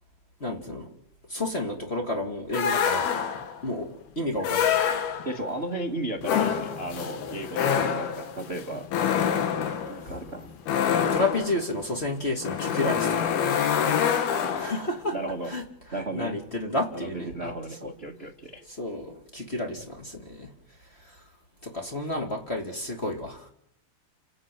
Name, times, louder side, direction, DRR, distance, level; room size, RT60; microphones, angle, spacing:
voice 1, 0.4-0.9 1.3-3.1 3.6-4.8 7.8-8.0 10.1-10.2 11.1-13.5 14.6-15.2 15.5-15.6 15.9-17.5 17.8-17.9 18.8-20.5 21.0-21.2 21.6-23.5, left 2 dB, 20° left, 3 dB, 2.0 m, -31 dB
sound 1, 2.5-3.6 4.4-5.5 6.2-14.9, left 8 dB, 85° left, 3.6 m, -26 dB
voice 2, 5.2-8.9 9.9-10.5 14.5-14.8 15.1-15.5 15.9-16.3 16.9-18.6, right 2 dB, 45° right, 4 dB, 0.8 m, -35 dB
30.0 x 12.5 x 9.4 m, 0.74 s
omnidirectional pair, 4.3 m